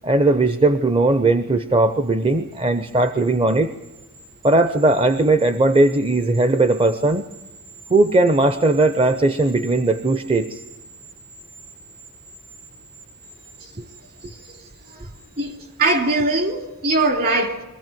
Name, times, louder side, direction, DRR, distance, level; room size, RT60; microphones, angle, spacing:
voice 1, 0.0-3.7 4.4-7.2 7.9-10.6, right 2 dB, 25° right, 0.8 m, -18 dB
sound 1, 1.9-16.5 16.9-17.0, right 3 dB, 80° right, 7.3 m, -47 dB
voice 2, 15.4-17.6, right 2 dB, 45° right, 3.0 m, -21 dB
24.0 x 15.0 x 9.2 m
head